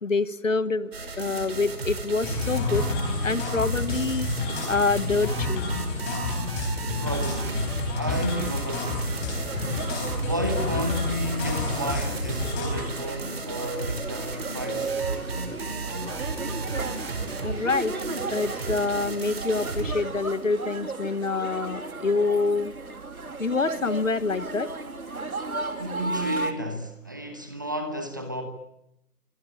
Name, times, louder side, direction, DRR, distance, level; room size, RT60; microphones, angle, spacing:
voice 1, 0.0-2.8 3.2-4.3 4.7-5.6 17.4-17.9 18.3-22.7 23.4-24.7, left 3 dB, 55° left, 1.5 m, -26 dB
sound 1, 0.9-20.0, right 3 dB, 40° right, 5.1 m, -34 dB
sound 2, 2.2-12.9, left 3 dB, 10° left, 3.9 m, -30 dB
voice 2, 7.0-9.7 10.2-15.0 25.8-28.4, equal, 15° right, 1.1 m, -32 dB
sound 3, 8.6-26.5, right 3 dB, 65° right, 3.4 m, -35 dB
26.5 x 25.0 x 8.9 m
figure-of-eight pair, 165°, 47 cm